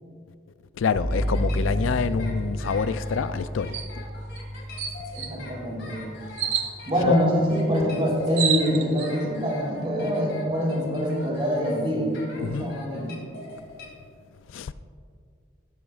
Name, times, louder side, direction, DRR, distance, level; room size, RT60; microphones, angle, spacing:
voice 1, 0.8-3.8 7.0-7.2 12.4-12.7 14.5-14.7, left 6 dB, 80° left, 0.4 m, -27 dB
sound 1, 1.0-8.7, equal, 5° left, 1.2 m, -32 dB
sound 2, 1.1-13.9, left 3 dB, 60° left, 2.7 m, -44 dB
sound 3, 3.7-3.9 4.4-4.5 4.8-5.3 6.4-6.7 7.8-7.9 8.1-9.1, right 8 dB, 65° right, 1.3 m, -27 dB
voice 2, 5.2-6.0 6.8-13.1, equal, 30° right, 3.3 m, -25 dB
17.0 x 12.5 x 2.4 m
head